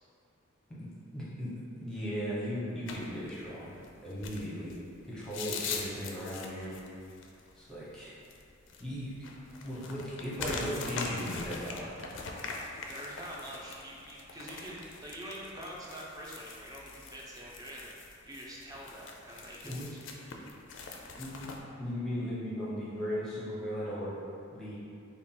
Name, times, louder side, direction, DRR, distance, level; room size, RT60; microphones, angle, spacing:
voice 1, 1.1-1.5 1.8-3.8 4.0-4.7 5.1-6.8 7.6-8.1 8.8-9.3 9.6-11.9 19.6-19.9 21.1-24.1 24.5-24.8, equal, 5° left, -9 dB, 0.8 m, -37 dB
sound 1, 2.9-21.6, left 4 dB, 65° left, 0.4 m, -43 dB
voice 2, 12.9-20.0, right 1 dB, 20° right, -4 dB, 0.5 m, -45 dB
3.7 x 2.3 x 3.6 m, 2.5 s
head